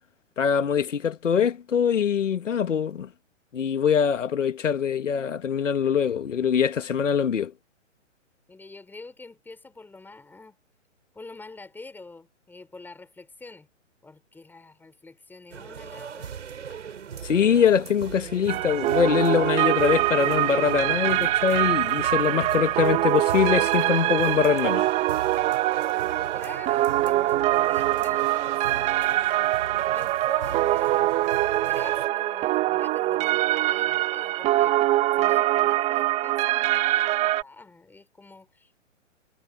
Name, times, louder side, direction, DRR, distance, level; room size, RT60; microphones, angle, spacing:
voice 1, 0.4-3.1 3.5-7.5 17.2-24.9, left 7 dB, 70° left, 1.8 m, -23 dB
voice 2, 8.5-10.5 11.1-13.7 14.0-16.4 26.3-29.3 29.8-31.3 31.7-38.8, left 3 dB, 5° left, 4.4 m, -46 dB
sound 1, 15.5-32.1, right 7 dB, 65° right, 7.1 m, -37 dB
sound 2, 18.5-37.4, right 16 dB, 15° right, 1.5 m, -24 dB
hypercardioid pair, 140°, 38 cm